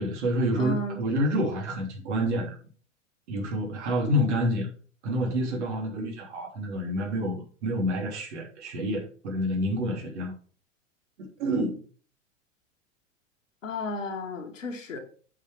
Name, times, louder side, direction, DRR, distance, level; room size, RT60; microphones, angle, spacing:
voice 1, 0.0-2.6 3.3-4.7 5.0-10.3 11.2-11.8, equal, 60° right, 1 dB, 3.3 m, -28 dB
voice 2, 0.6-1.0 13.6-15.0, left 1 dB, 75° left, 3 dB, 2.3 m, -33 dB
8.2 x 5.7 x 4.6 m, 0.42 s
figure-of-eight pair, 95°, 38 cm